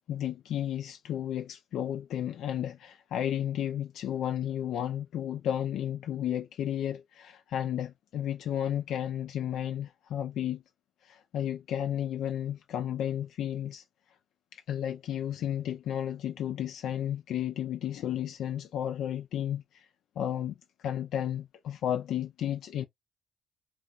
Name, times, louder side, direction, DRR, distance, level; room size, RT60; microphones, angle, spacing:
voice 1, 0.1-10.6 11.0-13.8 14.5-19.9 20.2-22.8, left 10 dB, 80° left, 0.3 m, -33 dB
2.2 x 2.1 x 3.6 m
cardioid pair, 90°, 0 cm